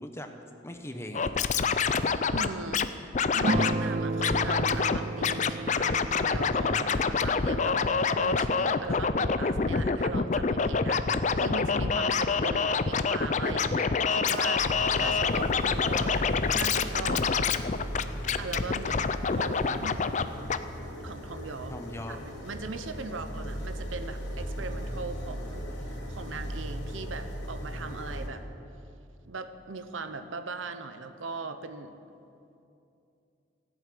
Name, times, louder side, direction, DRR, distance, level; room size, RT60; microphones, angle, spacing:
voice 1, 0.6-1.5 6.7-7.3 8.9-9.0 15.0-15.1 21.7-22.2, left 1 dB, 15° left, 5 dB, 0.9 m, -40 dB
Scratching (performance technique), 1.1-2.9 3.1-3.7 4.2-5.0 5.2-20.2 20.5-20.6, left 5 dB, 40° left, 0.4 m, -26 dB
voice 2, 2.3-2.9 3.3-14.7 14.9-16.3 16.5-17.3 18.4-20.0 21.0-21.8 22.1-25.6 26.1-28.4 29.3-31.9, right 3 dB, 85° right, 9 dB, 0.9 m, -39 dB
sound 1, 3.4-8.3, right 2 dB, 35° right, 0.4 m, -33 dB
sound 2, 14.6-28.3, equal, 75° left, 2.8 m, -37 dB
14.5 x 8.1 x 9.1 m, 2.6 s
head